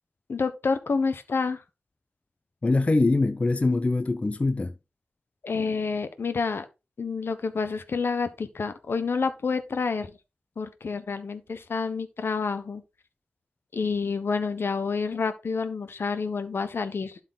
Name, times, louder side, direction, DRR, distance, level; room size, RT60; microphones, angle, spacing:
voice 1, 0.3-1.6 5.4-6.7 7.0-10.1 10.6-12.8 13.7-17.2, left 4 dB, 70° left, 1.1 m, -28 dB
voice 2, 2.6-4.7, left 3 dB, 30° left, 0.6 m, -23 dB
11.5 x 4.4 x 3.9 m
wide cardioid pair, 100°, 4 cm